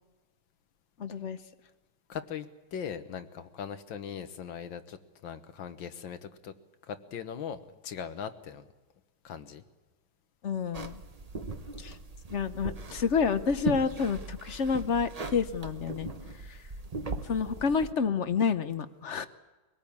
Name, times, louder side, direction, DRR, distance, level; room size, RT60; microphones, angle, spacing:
voice 1, 1.0-1.4 10.4-11.0 11.8-11.9 12.3-16.1 16.5-16.6 17.2-19.3, left 5 dB, 50° left, 11 dB, 0.9 m, -29 dB
voice 2, 2.1-5.0 5.2-6.5 6.9-8.7 9.2-9.6 15.9-16.0, left 8 dB, 75° left, 10 dB, 1.9 m, -40 dB
sound 1, 10.7-17.9, right 3 dB, 30° right, 0.7 m, -39 dB
23.5 x 19.0 x 8.6 m, 1.2 s
omnidirectional pair, 2.2 m